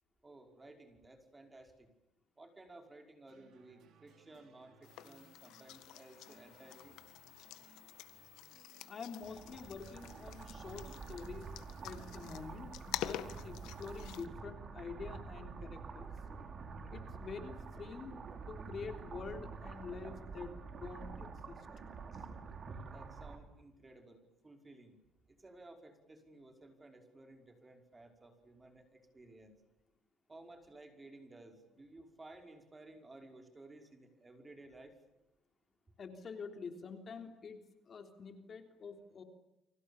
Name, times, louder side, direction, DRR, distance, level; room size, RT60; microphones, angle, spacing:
voice 1, 0.2-1.9 2.4-7.0 22.9-25.0 25.3-29.6 30.3-35.0, right 2 dB, 15° right, 4 dB, 5.5 m, -56 dB
sound 1, 3.3-11.0, right 6 dB, 65° right, 5.8 m, -66 dB
sound 2, 4.8-14.3, left 13 dB, 90° left, 1.7 m, -48 dB
voice 2, 8.9-11.5 11.8-16.1 16.9-18.1 18.5-21.7 22.1-22.2 36.0-39.2, left 5 dB, 40° left, 5 dB, 3.4 m, -47 dB
sound 3, 9.2-23.4, right 4 dB, 40° right, 4.6 m, -47 dB
30.0 x 25.0 x 7.2 m, 0.91 s
cardioid pair, 125°, 0 cm